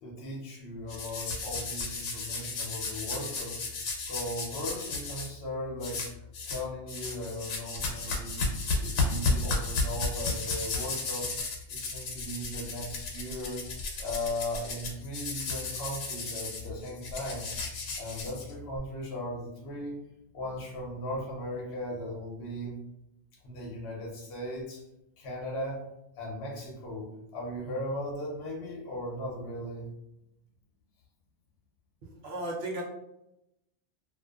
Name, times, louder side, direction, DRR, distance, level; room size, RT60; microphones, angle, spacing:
voice 1, 0.0-3.8 4.1-6.0 6.5-8.5 8.8-11.3 11.7-13.6 14.0-17.5 18.0-20.0 20.3-22.8 23.4-24.8 25.2-25.8 26.2-27.1 27.3-29.9, left 1 dB, 65° left, -3 dB, 0.8 m, -37 dB
sound 1, 0.9-5.3 5.8-6.6 6.9-18.8, left 3 dB, 90° left, 0.9 m, -34 dB
voice 2, 32.2-32.8, right 1 dB, 65° right, -2 dB, 0.8 m, -34 dB
2.4 x 2.4 x 2.3 m, 0.87 s
omnidirectional pair, 1.2 m